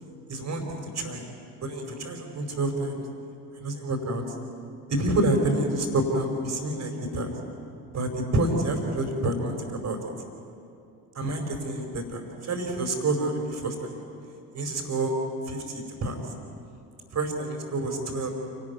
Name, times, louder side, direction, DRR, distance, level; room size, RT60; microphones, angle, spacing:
voice 1, 0.3-1.2 1.6-3.0 3.5-4.2 4.9-7.3 7.9-10.0 11.1-13.9 14.5-15.1 15.5-16.2 17.1-18.3, right 2 dB, 35° right, 4 dB, 4.9 m, -28 dB
29.0 x 12.5 x 9.5 m, 2.6 s
figure-of-eight pair, 55°, 47 cm